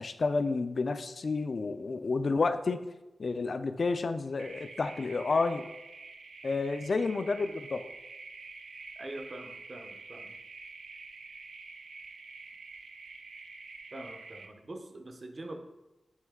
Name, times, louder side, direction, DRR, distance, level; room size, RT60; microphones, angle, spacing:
voice 1, 0.0-2.8 3.2-5.7 6.4-7.9, left 3 dB, 45° left, 10 dB, 0.3 m, -30 dB
sound 1, 4.4-14.5, right 4 dB, 75° right, 0.5 m, -47 dB
voice 2, 9.0-10.3 13.9-15.6, right 1 dB, 35° right, 5 dB, 0.7 m, -44 dB
9.0 x 3.2 x 3.6 m, 1.0 s
wide cardioid pair, 160°, 0 cm